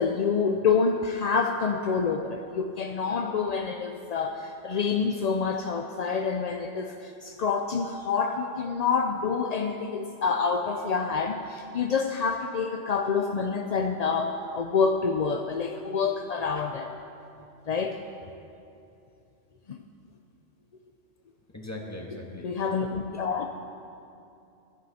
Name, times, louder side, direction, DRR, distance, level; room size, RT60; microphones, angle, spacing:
voice 1, 0.0-16.9 17.7-18.0 19.7-19.8 22.4-23.5, left 5 dB, 55° left, 4 dB, 0.4 m, -27 dB
voice 2, 21.5-22.5 23.1-23.3, left 1 dB, 15° left, -1 dB, 1.6 m, -40 dB
15.5 x 12.5 x 4.2 m, 2.7 s
omnidirectional pair, 1.2 m